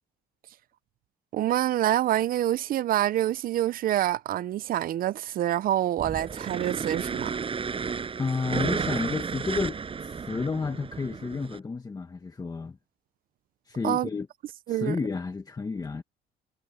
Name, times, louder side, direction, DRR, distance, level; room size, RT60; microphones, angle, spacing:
voice 1, 1.3-7.4 13.8-14.1 14.7-15.0, right 12 dB, 55° right, 0.7 m, -26 dB
sound 1, 6.0-11.6, right 5 dB, 30° right, 6.8 m, -33 dB
voice 2, 8.2-12.8 13.7-14.3 14.7-16.0, left 4 dB, 20° left, 1.4 m, -31 dB
cardioid pair, 110°, 17 cm